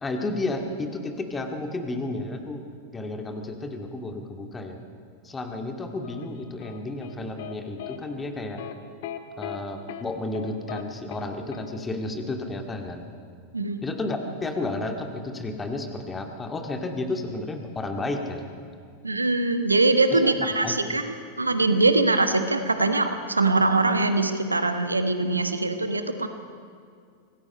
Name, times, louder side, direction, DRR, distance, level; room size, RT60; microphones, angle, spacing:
voice 1, 0.0-2.7 2.9-4.8 5.2-8.6 9.4-13.1 13.8-18.5 20.1-20.3 20.6-20.7, left 2 dB, 15° left, 4 dB, 2.2 m, -32 dB
sound 1, 6.0-7.5 7.8-8.0 8.6-8.7 9.0-9.6 9.9-10.0 10.3-10.8 11.1-11.3 11.5-11.7, left 11 dB, 55° left, 1.2 m, -37 dB
voice 2, 19.0-26.3, right 2 dB, 80° right, 8 dB, 1.3 m, -22 dB
25.5 x 18.5 x 5.5 m, 2.3 s
figure-of-eight pair, 90°, 0 cm